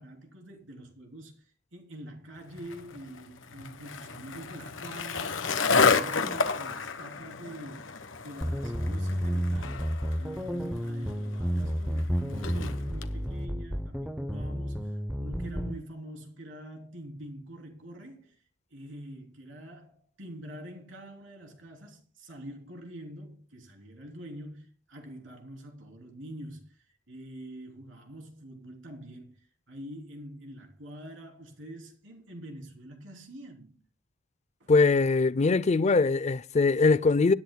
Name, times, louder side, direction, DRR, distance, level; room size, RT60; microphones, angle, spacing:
voice 1, 0.0-7.9 8.2-18.4 18.7-33.8 34.6-34.7, right 1 dB, 75° right, 3.3 m, -45 dB
Skateboard, 2.6-13.1, left 5 dB, 85° left, 1.1 m, -31 dB
sound 1, 8.4-15.8, equal, ahead, 0.7 m, -31 dB
voice 2, 34.7-37.3, left 3 dB, 35° left, 0.5 m, -22 dB
24.5 x 10.5 x 2.2 m
head